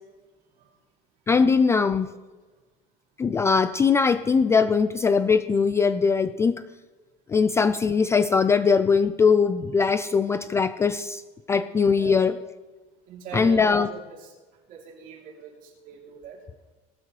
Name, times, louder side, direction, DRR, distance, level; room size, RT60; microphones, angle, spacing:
voice 1, 1.3-2.1 3.2-6.6 7.3-11.2 11.5-12.4 13.3-13.9, left 5 dB, 15° left, 11 dB, 0.3 m, -21 dB
voice 2, 13.1-14.3 14.7-16.4, right 7 dB, 50° right, -1 dB, 3.1 m, -41 dB
18.0 x 12.5 x 3.2 m, 1.3 s
cardioid pair, 160°, 18 cm